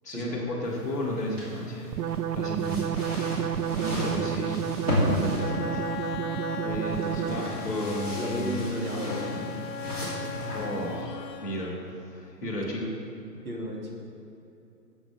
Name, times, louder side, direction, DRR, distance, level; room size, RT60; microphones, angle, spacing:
voice 1, 0.0-2.0 2.3-2.9 4.0-4.7 5.0-5.9 6.6-8.6 10.5-12.9, equal, 10° left, -12 dB, 1.0 m, -33 dB
sound 1, 0.6-11.0, left 1 dB, 25° right, 2.4 m, -34 dB
sound 2, 1.9-7.7, right 10 dB, 85° right, 0.5 m, -31 dB
voice 2, 3.7-4.3 8.2-9.5 12.4-12.5 13.4-13.9, right 1 dB, 55° right, -2 dB, 2.6 m, -34 dB
Bowed string instrument, 5.3-12.0, left 7 dB, 80° left, 0.8 m, -38 dB
17.5 x 7.1 x 3.6 m, 2.9 s
hypercardioid pair, 180°, 49 cm